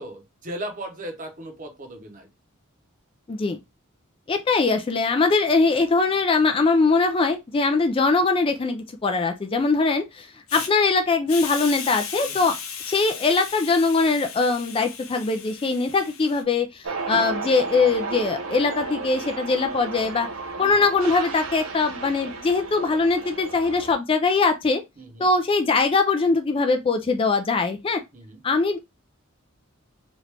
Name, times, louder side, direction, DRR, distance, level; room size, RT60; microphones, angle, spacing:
voice 1, 0.0-2.3 12.2-12.5 20.6-20.7 25.0-25.3 28.1-28.4, right 1 dB, 40° right, 0.8 m, -37 dB
voice 2, 3.3-3.6 4.3-12.5 12.8-20.3 20.6-24.8 25.2-28.0 28.4-28.8, left 4 dB, 25° left, 0.3 m, -22 dB
Hiss, 10.5-10.7 11.3-16.4, left 7 dB, 80° left, 0.7 m, -36 dB
sound 1, 16.8-24.0, right 3 dB, 80° right, 0.7 m, -33 dB
3.0 x 2.5 x 3.3 m
head